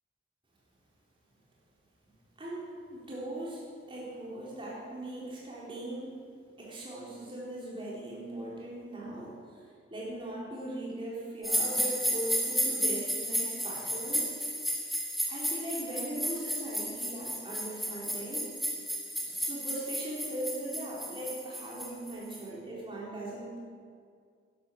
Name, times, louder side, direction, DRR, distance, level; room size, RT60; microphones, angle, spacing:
voice 1, 2.4-6.3 6.6-14.3 15.3-18.5 19.2-23.6, right 1 dB, 30° right, -5 dB, 3.7 m, -39 dB
sound 1, 11.4-22.4, equal, ahead, 1.8 m, -33 dB
11.5 x 11.0 x 6.4 m, 2.1 s
head